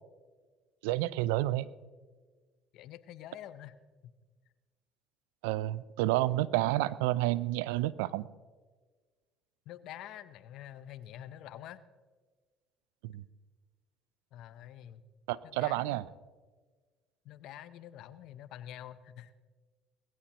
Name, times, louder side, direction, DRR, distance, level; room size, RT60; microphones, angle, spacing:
voice 1, 0.8-1.7 5.4-8.3 13.0-13.2 15.3-16.0, right 16 dB, 85° right, 19 dB, 0.4 m, -30 dB
voice 2, 2.7-3.8 4.0-4.1 9.7-11.8 14.3-15.1 15.4-16.0 17.2-19.3, left 11 dB, 70° left, 14 dB, 0.8 m, -47 dB
20.0 x 15.5 x 3.0 m, 1.4 s
supercardioid pair, 80°, 0 cm